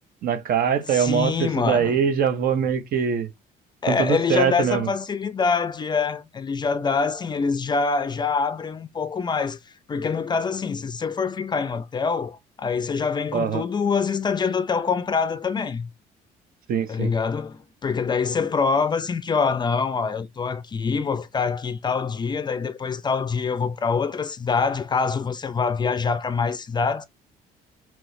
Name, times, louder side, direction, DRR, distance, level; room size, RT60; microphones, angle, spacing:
voice 1, 0.2-3.3 3.9-4.9 13.3-13.6 16.7-17.1, right 7 dB, 60° right, 0.7 m, -23 dB
voice 2, 0.9-2.0 3.8-9.6 9.9-15.9 16.9-27.1, left 5 dB, 25° left, 0.4 m, -25 dB
3.0 x 3.0 x 2.6 m
cardioid pair, 110°, 17 cm